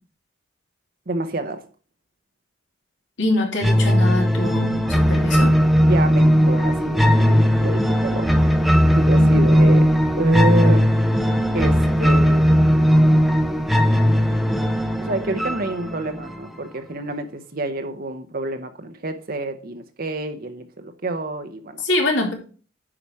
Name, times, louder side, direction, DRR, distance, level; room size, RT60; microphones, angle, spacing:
voice 1, 1.1-1.7 5.8-8.3 8.9-9.8 10.2-10.9 11.5-12.6 15.0-21.8, right 2 dB, 50° right, 7 dB, 0.9 m, -27 dB
voice 2, 3.2-5.5 9.2-9.4 21.8-22.3, left 2 dB, 80° left, 1 dB, 2.8 m, -24 dB
sound 1, 3.6-16.6, equal, ahead, 0.7 m, -17 dB
9.8 x 5.0 x 4.6 m, 0.38 s
head